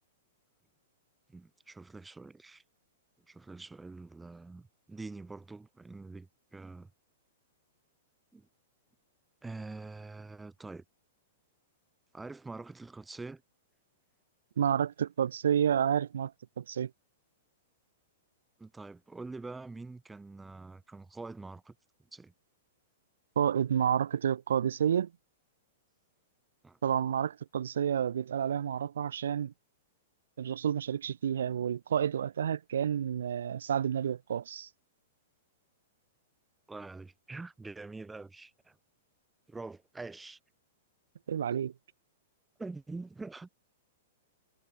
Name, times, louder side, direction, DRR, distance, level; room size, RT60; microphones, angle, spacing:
voice 1, 1.3-2.6 3.3-6.9 8.3-8.5 9.4-10.8 12.1-13.4 18.6-21.8 22.1-22.3 26.6-26.8 36.7-38.8 39.5-40.4 42.6-43.5, right 3 dB, 10° right, 1.2 m, -45 dB
voice 2, 14.6-16.3 16.6-16.9 23.4-25.1 26.8-29.5 30.4-34.7 41.3-41.7, right 8 dB, 80° right, 1.0 m, -30 dB
hypercardioid pair, 125°, 0 cm